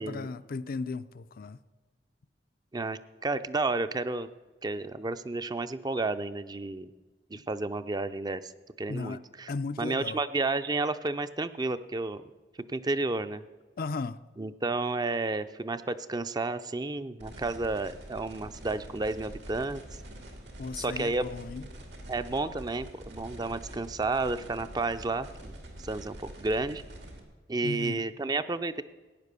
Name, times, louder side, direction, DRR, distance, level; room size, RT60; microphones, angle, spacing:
voice 1, 0.0-1.6 7.3-7.4 8.9-9.2 9.5-10.2 13.8-14.2 20.6-21.6 27.6-28.0, left 4 dB, 55° left, 0.5 m, -36 dB
voice 2, 2.7-4.3 4.6-6.9 7.3-8.5 8.8-9.5 9.8-12.3 12.7-13.4 14.4-19.8 20.8-21.3 22.1-26.8 27.5-28.8, right 3 dB, 25° right, 0.5 m, -31 dB
sound 1, 17.2-27.2, right 1 dB, 85° right, 2.6 m, -45 dB
15.5 x 9.6 x 6.8 m
head